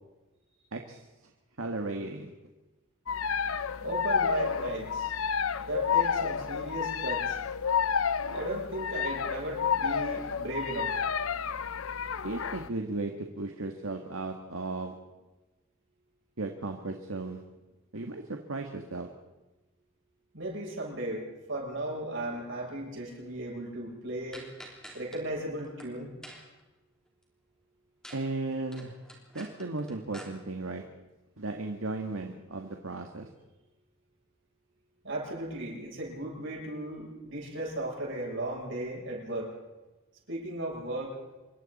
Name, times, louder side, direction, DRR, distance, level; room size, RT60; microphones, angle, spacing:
voice 1, 0.7-1.0 1.6-2.3 12.2-14.9 16.4-17.4 17.9-19.1 28.1-28.9 29.3-30.8 31.4-33.3, right 2 dB, 85° right, 3 dB, 1.7 m, -35 dB
sound 1, 3.1-12.7, left 6 dB, 85° left, 0.7 m, -30 dB
voice 2, 3.8-5.3 5.6-7.4 8.3-11.0 20.3-24.5 24.9-26.1 35.0-39.5 40.3-41.2, right 1 dB, 65° right, -2 dB, 7.6 m, -36 dB
sound 2, 24.3-25.2 25.6-25.9 26.2-26.6 28.0-28.3 28.5-30.3, equal, 5° left, 3.2 m, -47 dB
26.5 x 23.5 x 4.2 m, 1.1 s
head